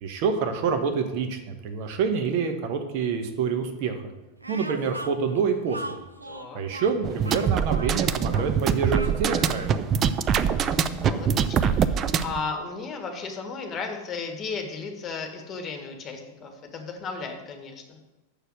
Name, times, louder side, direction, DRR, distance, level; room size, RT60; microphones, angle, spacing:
voice 1, 0.0-4.0 4.5-6.0 6.5-9.7, right 6 dB, 45° right, 6 dB, 1.1 m, -27 dB
Speech, 4.4-9.8, right 2 dB, 85° right, 0.7 m, -39 dB
voice 2, 6.3-6.6 10.3-18.0, left 4 dB, 25° left, 4 dB, 1.7 m, -35 dB
sound 1, 7.0-12.4, right 7 dB, 30° right, 0.5 m, -24 dB
6.9 x 6.7 x 7.8 m, 1.0 s
figure-of-eight pair, 90°, 0 cm